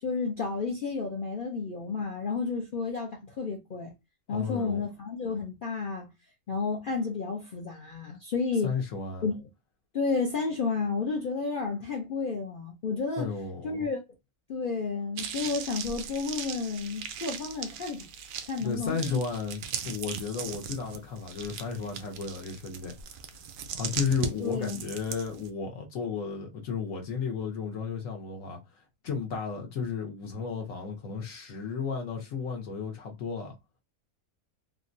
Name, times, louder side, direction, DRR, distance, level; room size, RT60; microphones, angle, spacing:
voice 1, 0.0-3.9 4.3-6.1 6.5-8.7 9.2-9.5 9.9-13.3 13.6-14.0 14.5-18.1 18.4-19.2 24.4-24.8, left 4 dB, 50° left, 0.6 m, -31 dB
voice 2, 4.3-4.8 8.6-9.3 13.2-13.9 18.6-22.9 23.7-33.5, left 5 dB, 70° left, 1.1 m, -33 dB
sound 1, 15.2-25.5, right 8 dB, 75° right, 0.9 m, -39 dB
3.7 x 2.1 x 2.5 m
omnidirectional pair, 1.5 m